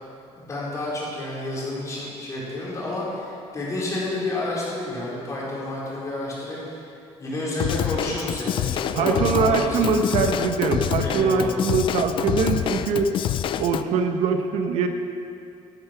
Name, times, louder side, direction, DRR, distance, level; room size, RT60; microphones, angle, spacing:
voice 1, 0.3-6.8 7.2-10.0 11.0-11.6, left 1 dB, 30° left, -6 dB, 4.3 m, -30 dB
Drum kit / Drum, 7.6-13.8, left 10 dB, 50° left, 0.5 m, -27 dB
voice 2, 9.0-13.1 13.6-14.9, right 5 dB, 75° right, 5 dB, 1.2 m, -22 dB
13.0 x 13.0 x 5.9 m, 2.5 s
cardioid pair, 155°, 11 cm